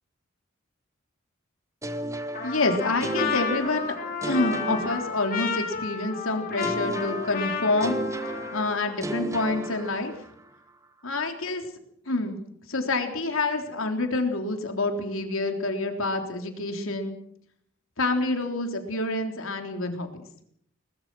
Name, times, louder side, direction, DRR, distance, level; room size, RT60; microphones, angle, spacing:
sound 1, 1.8-5.8 6.6-10.5, right 1 dB, 15° right, 1.3 m, -34 dB
Trumpet, 2.3-9.0, left 5 dB, 45° left, 4.5 m, -32 dB
voice 1, 2.4-3.9 4.2-8.0 8.5-10.1 11.0-11.6 12.1-12.4 12.7-17.2 18.0-20.1, left 2 dB, 80° left, 4 dB, 3.6 m, -27 dB
22.0 x 20.5 x 6.2 m, 0.70 s
head